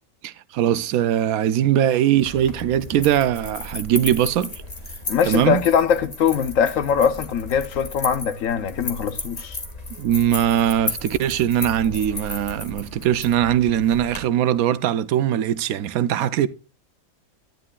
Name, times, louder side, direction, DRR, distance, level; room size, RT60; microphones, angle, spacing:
voice 1, 0.2-4.6 5.3-5.6 10.0-16.5, right 11 dB, 80° right, 1.1 m, -21 dB
sound 1, 2.1-14.2, left 2 dB, 30° left, 1.7 m, -34 dB
voice 2, 5.1-9.6, left 7 dB, 65° left, 1.1 m, -21 dB
11.0 x 10.5 x 2.3 m
omnidirectional pair, 1.5 m